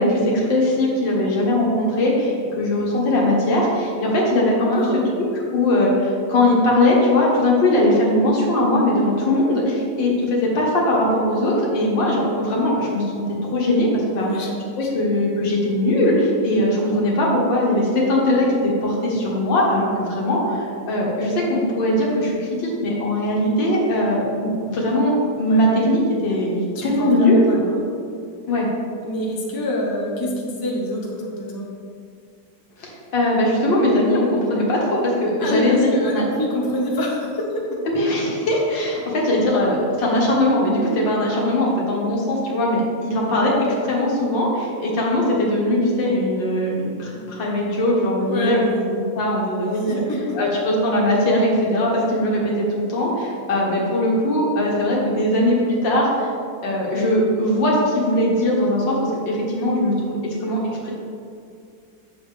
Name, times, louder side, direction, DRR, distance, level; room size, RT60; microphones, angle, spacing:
voice 1, 0.0-4.9 5.5-14.3 14.8-27.7 28.5-28.7 32.8-36.2 37.9-43.6 43.8-48.6 49.2-50.0 50.3-56.3 56.6-60.9, left 1 dB, 85° left, -3 dB, 2.3 m, -20 dB
voice 2, 4.6-5.0 14.1-14.5 14.8-14.9 25.5-25.7 26.7-27.8 29.0-31.7 35.4-37.8 48.2-48.8 49.7-50.4, left 1 dB, 15° left, -2 dB, 0.8 m, -26 dB
8.5 x 6.8 x 3.4 m, 2.3 s
omnidirectional pair, 1.9 m